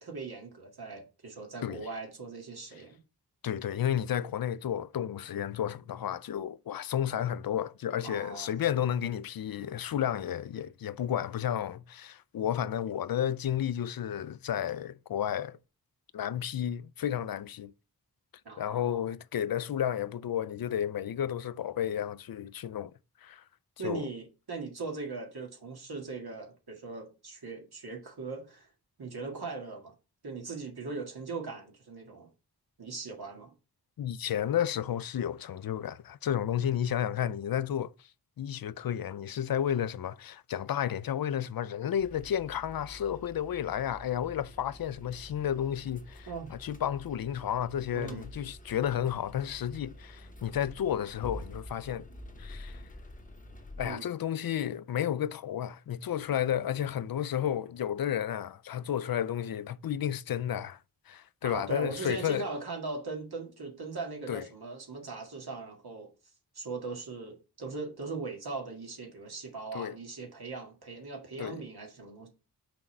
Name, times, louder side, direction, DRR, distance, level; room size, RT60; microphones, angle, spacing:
voice 1, 0.0-3.0 8.0-8.5 18.5-19.1 23.8-28.7 29.0-29.9 30.2-32.3 32.8-33.5 46.3-46.5 47.9-48.3 53.8-54.1 61.4-66.1 66.5-72.3, right 4 dB, 65° right, 1.9 m, -39 dB
voice 2, 3.4-15.6 16.1-17.7 18.6-22.9 23.2-23.4 23.8-24.1 34.0-37.9 38.4-52.1 52.4-52.8 53.8-60.8 61.1-62.5 64.3-64.4 69.7-70.0 71.4-71.6, left 10 dB, 60° left, 0.5 m, -32 dB
sound 1, 42.0-53.9, left 1 dB, 20° left, 0.9 m, -48 dB
5.9 x 3.8 x 4.4 m
wide cardioid pair, 85°, 40 cm